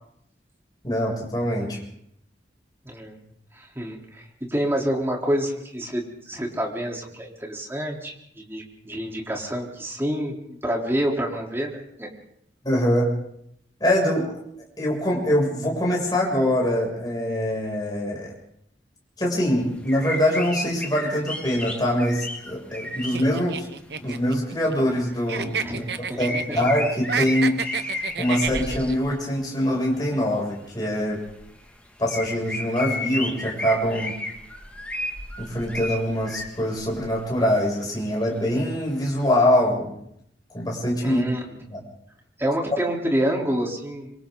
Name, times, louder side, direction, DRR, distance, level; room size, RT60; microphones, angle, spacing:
voice 1, 0.8-1.8 12.6-13.1 13.8-14.3 14.8-18.3 19.2-23.7 24.0-25.8 26.2-31.2 32.0-34.1 35.4-39.9 40.5-41.2 41.7-41.8, equal, 25° left, -3 dB, 7.0 m, -24 dB
voice 2, 2.9-3.2 3.5-12.1 25.6-26.6 41.0-41.5 42.4-44.1, equal, 15° right, -1 dB, 3.8 m, -28 dB
sound 1, 19.4-19.5 19.9-23.3 24.0-24.1 24.6-25.0 25.3-25.5 26.2-29.3 30.6-30.7 31.0-31.7 32.0-37.5 38.0-38.1 38.4-38.5 39.2-39.3, left 1 dB, 10° left, 2.3 m, -33 dB
sound 2, 23.1-25.0 25.3-26.7 27.0-29.0, right 6 dB, 65° right, 1.0 m, -30 dB
26.5 x 25.5 x 4.0 m, 0.73 s
head